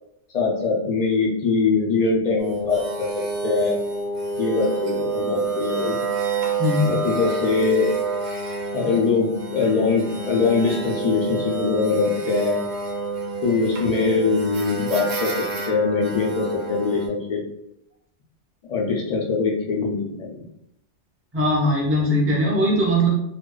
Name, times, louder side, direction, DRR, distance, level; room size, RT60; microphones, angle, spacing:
voice 1, 0.3-2.8 3.4-3.8 4.4-6.0 6.9-7.9 8.7-12.6 13.4-17.4 18.7-20.5, left 4 dB, 60° left, -2 dB, 0.4 m, -22 dB
sound 1, 2.4-17.1, right 3 dB, 70° right, 0.8 m, -28 dB
voice 2, 6.6-6.9 21.3-23.1, equal, 20° right, -4 dB, 0.3 m, -20 dB
2.5 x 2.1 x 2.3 m, 0.80 s
omnidirectional pair, 1.2 m